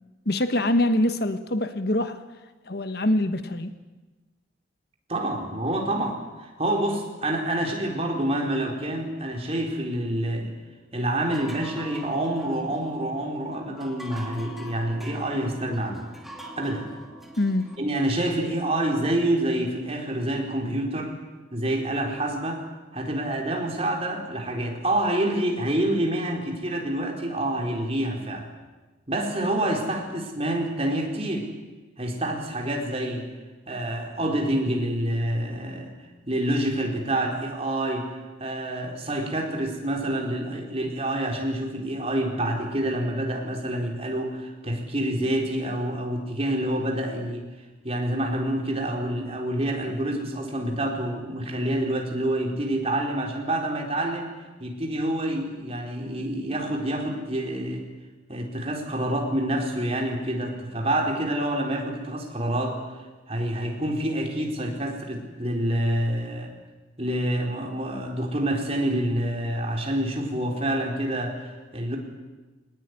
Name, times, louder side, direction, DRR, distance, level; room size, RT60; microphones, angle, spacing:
voice 1, 0.2-2.2 2.7-3.7 17.4-17.7, left 1 dB, 55° left, 10 dB, 1.4 m, -24 dB
voice 2, 5.1-10.5 10.9-16.0 16.6-16.9 17.8-21.1 21.5-22.6 22.9-28.5 29.1-31.5 32.0-33.3 33.7-35.9 36.3-47.5 47.8-54.3 54.6-57.8 58.3-66.5 67.0-72.0, right 1 dB, 30° right, 1 dB, 4.4 m, -27 dB
sound 1, 11.2-17.8, equal, ahead, 2.6 m, -43 dB
24.0 x 19.5 x 9.8 m, 1.2 s
head